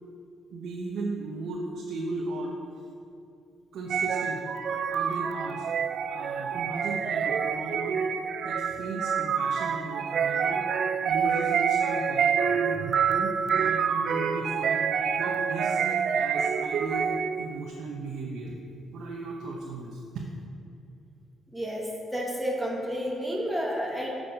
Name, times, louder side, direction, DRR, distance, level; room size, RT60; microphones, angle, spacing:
voice 1, 0.5-2.5 3.7-4.4 4.9-5.7 6.1-8.0 8.4-10.6 11.1-14.9 15.1-18.5 18.9-20.2, right 2 dB, 75° right, -1 dB, 0.7 m, -36 dB
sound 1, 3.9-17.5, right 7 dB, 60° right, 0.3 m, -27 dB
voice 2, 21.5-24.1, equal, ahead, -2 dB, 1.3 m, -31 dB
6.4 x 6.0 x 5.2 m, 2.5 s
cardioid pair, 90°, 0 cm